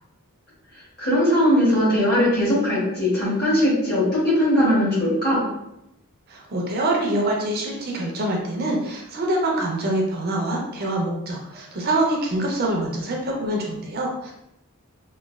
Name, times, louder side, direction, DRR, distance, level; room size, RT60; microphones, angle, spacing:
voice 1, 1.0-5.4, equal, 40° left, -8 dB, 1.4 m, -20 dB
voice 2, 6.3-14.3, right 1 dB, 45° right, -1 dB, 0.4 m, -25 dB
3.0 x 2.2 x 2.2 m, 0.85 s
head